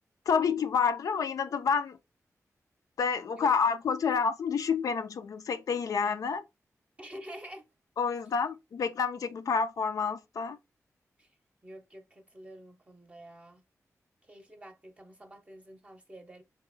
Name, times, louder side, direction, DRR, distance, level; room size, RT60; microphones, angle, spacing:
voice 1, 0.3-2.0 3.0-6.4 8.0-10.6, left 6 dB, 80° left, 0.4 m, -29 dB
voice 2, 7.0-7.7 11.2-11.3 11.6-13.6 14.3-16.4, right 1 dB, 20° right, 0.6 m, -48 dB
3.8 x 2.9 x 3.8 m
wide cardioid pair, 150°, 6 cm